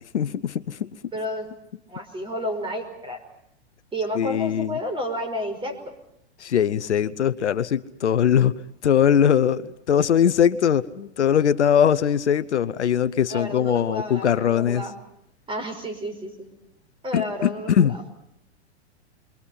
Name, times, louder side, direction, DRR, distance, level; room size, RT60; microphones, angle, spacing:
voice 1, 0.1-0.9 4.2-4.8 6.4-8.5 8.8-14.9 17.1-17.9, left 9 dB, 85° left, 14 dB, 1.0 m, -21 dB
voice 2, 1.1-1.5 1.9-3.2 3.9-5.9 13.3-14.9 15.5-16.5 17.0-17.9, equal, 15° right, 7 dB, 5.4 m, -31 dB
28.5 x 23.5 x 5.7 m, 0.79 s
hypercardioid pair, 115°, 33 cm